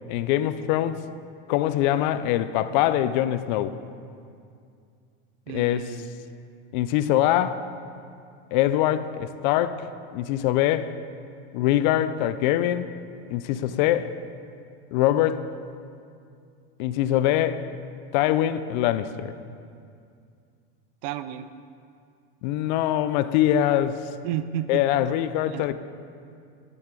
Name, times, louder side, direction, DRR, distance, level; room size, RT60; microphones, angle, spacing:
voice 1, 0.1-1.0 1.5-3.8 5.5-6.0 6.7-7.6 8.5-9.9 10.1-10.9 11.5-12.9 13.3-14.2 14.9-15.5 16.8-17.6 18.1-19.3 22.4-24.1 24.7-25.7, left 12 dB, 50° left, 13 dB, 0.4 m, -23 dB
voice 2, 5.5-6.3 21.0-21.5 24.2-24.8 25.5-25.6, right 10 dB, 45° right, 13 dB, 0.4 m, -32 dB
10.5 x 8.8 x 3.8 m, 2.4 s
supercardioid pair, 160°, 30 cm